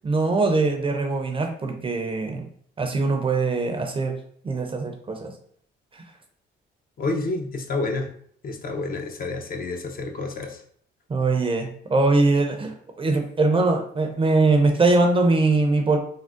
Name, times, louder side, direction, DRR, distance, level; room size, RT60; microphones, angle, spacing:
voice 1, 0.0-2.4 2.8-4.1 4.4-5.3 5.9-6.0 11.1-16.0, right 3 dB, 25° right, 4 dB, 0.5 m, -22 dB
voice 2, 7.0-8.1 8.4-10.6, left 3 dB, 45° left, 4 dB, 0.5 m, -29 dB
3.5 x 2.0 x 2.4 m, 0.62 s
cardioid pair, 90°, 20 cm